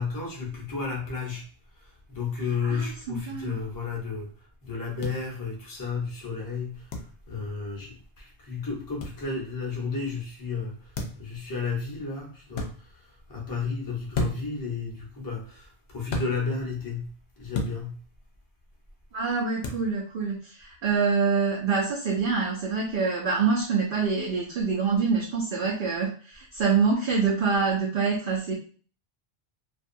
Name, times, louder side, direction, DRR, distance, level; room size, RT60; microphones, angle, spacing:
voice 1, 0.0-1.5 2.1-4.3 4.6-6.9 7.3-10.8 11.2-13.0 13.3-17.1 17.4-18.0, left 4 dB, 20° left, -3 dB, 0.7 m, -32 dB
voice 2, 2.5-3.6 19.1-28.5, right 5 dB, 60° right, -3 dB, 0.7 m, -26 dB
sound 1, 5.0-5.2 6.9-7.1 9.0-9.2 10.9-11.3 12.5-12.7 14.1-14.5 16.1-16.3 17.5-17.8 19.6-19.8, left 2 dB, 70° left, 0.8 m, -30 dB
2.6 x 2.3 x 2.6 m, 0.40 s
omnidirectional pair, 1.1 m